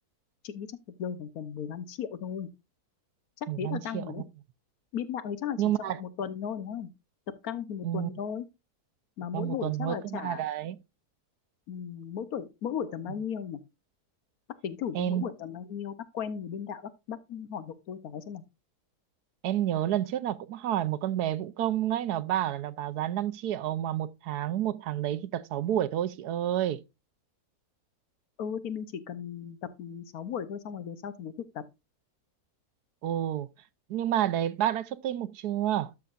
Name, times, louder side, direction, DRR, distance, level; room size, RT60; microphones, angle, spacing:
voice 1, 1.0-2.5 3.4-4.2 4.9-6.9 7.4-8.5 9.2-10.4 11.7-13.6 14.6-18.4 28.4-31.6, left 8 dB, 70° left, 1.3 m, -36 dB
voice 2, 3.5-4.0 5.6-6.0 7.8-8.1 9.3-10.8 14.9-15.3 19.4-26.8 33.0-33.5 33.9-35.9, right 11 dB, 85° right, 1.2 m, -29 dB
12.5 x 5.9 x 2.5 m
omnidirectional pair, 1.7 m